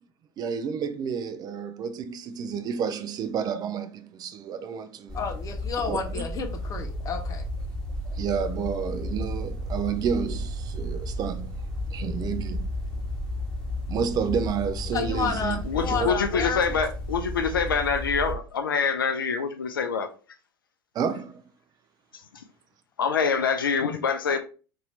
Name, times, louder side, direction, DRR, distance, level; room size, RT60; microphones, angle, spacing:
voice 1, 0.4-5.3 5.8-6.3 8.0-12.7 13.9-16.2 20.9-21.4, right 7 dB, 35° right, 0.4 m, -30 dB
voice 2, 5.1-7.4 14.9-16.8, left 6 dB, 30° left, 0.7 m, -31 dB
sound 1, 5.1-18.3, left 1 dB, 10° left, 1.3 m, -33 dB
voice 3, 15.7-20.1 23.0-24.4, left 6 dB, 85° left, 0.4 m, -25 dB
2.7 x 2.6 x 3.1 m
hypercardioid pair, 75°, 11 cm